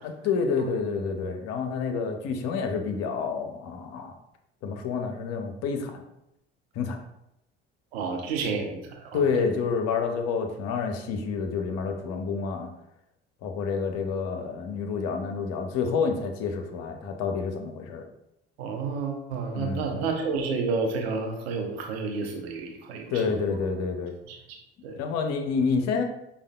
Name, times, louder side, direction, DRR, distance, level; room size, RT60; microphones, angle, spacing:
voice 1, 0.0-4.1 4.6-6.0 6.8-7.0 9.1-12.7 13.4-18.1 19.5-20.1 23.1-24.1 25.0-26.0, left 5 dB, 55° left, 5 dB, 0.6 m, -28 dB
voice 2, 7.9-8.8 9.1-9.3 18.6-23.1 24.3-24.4 24.8-25.0, right 4 dB, 75° right, 3 dB, 0.6 m, -30 dB
4.8 x 2.3 x 2.2 m, 0.83 s
figure-of-eight pair, 50°, 31 cm